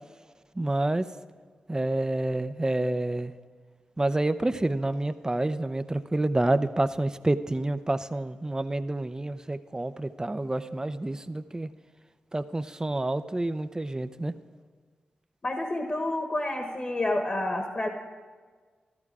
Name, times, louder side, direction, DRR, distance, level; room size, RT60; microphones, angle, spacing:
voice 1, 0.6-1.1 1.7-3.3 4.0-11.7 12.3-14.3, right 2 dB, 20° right, 12 dB, 0.6 m, -28 dB
voice 2, 15.4-17.9, left 1 dB, 40° left, 4 dB, 1.4 m, -29 dB
13.5 x 13.5 x 4.8 m, 1.5 s
cardioid pair, 50°, 3 cm